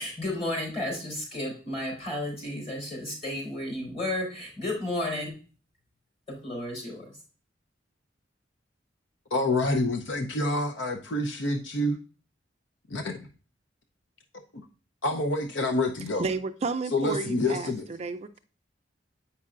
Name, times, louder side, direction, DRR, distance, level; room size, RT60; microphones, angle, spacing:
voice 1, 0.0-5.3 6.3-7.1, left 1 dB, 30° left, 3.6 m, -32 dB
voice 2, 9.3-12.0 12.9-13.2 14.5-14.6 15.0-16.2 16.9-17.8, left 2 dB, 75° left, 0.7 m, -27 dB
voice 3, 16.2-18.4, right 4 dB, 35° right, 0.4 m, -32 dB
8.1 x 5.4 x 2.4 m
head